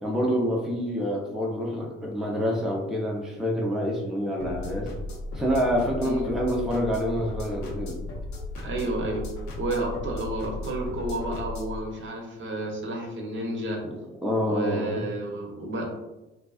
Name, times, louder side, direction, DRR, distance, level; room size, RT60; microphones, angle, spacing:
voice 1, 0.0-4.9 5.3-8.0 13.8-15.1, equal, ahead, -1 dB, 0.5 m, -27 dB
sound 1, 4.4-11.8, left 2 dB, 65° left, 0.7 m, -36 dB
voice 2, 8.6-9.2 9.6-13.8 14.5-15.8, right 1 dB, 40° right, 1 dB, 0.7 m, -31 dB
2.6 x 2.3 x 2.3 m, 1.0 s
hypercardioid pair, 60°, 29 cm